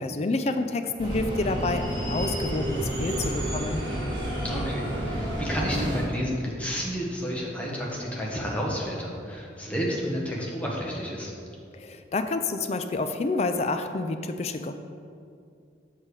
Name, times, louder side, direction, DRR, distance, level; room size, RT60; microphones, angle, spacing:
voice 1, 0.0-3.8 11.7-14.8, left 3 dB, 35° left, 8 dB, 0.4 m, -29 dB
sound 1, 1.0-6.0, equal, 25° right, 1.8 m, -30 dB
voice 2, 4.4-11.3, equal, 5° left, -3 dB, 1.2 m, -31 dB
7.5 x 6.4 x 4.8 m, 2.4 s
head